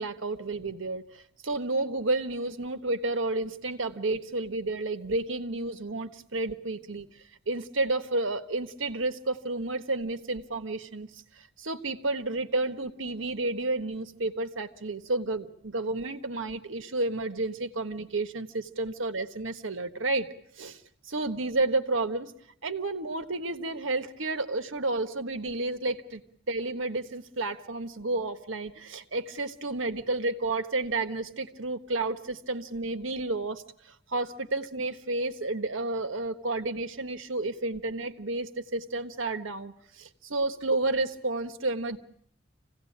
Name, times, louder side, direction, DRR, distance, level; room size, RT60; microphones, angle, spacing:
voice 1, 0.0-7.1 7.5-11.1 11.4-20.3 20.6-20.8 21.1-22.3 22.6-26.2 26.5-42.0, right 2 dB, 80° right, 8 dB, 1.4 m, -31 dB
26.5 x 17.0 x 8.7 m, 0.72 s
head